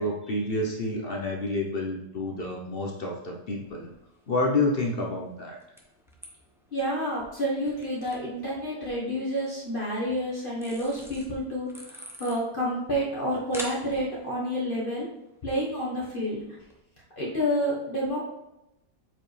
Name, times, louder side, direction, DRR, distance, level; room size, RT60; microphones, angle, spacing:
voice 1, 0.0-3.9 4.3-5.6, left 2 dB, 50° left, 0 dB, 0.7 m, -29 dB
sound 1, 2.7-16.8, equal, 5° right, 0.5 m, -49 dB
voice 2, 6.7-15.1 15.4-16.4 17.2-18.2, equal, 35° left, -5 dB, 1.3 m, -29 dB
7.7 x 4.7 x 3.2 m, 0.90 s
omnidirectional pair, 1.8 m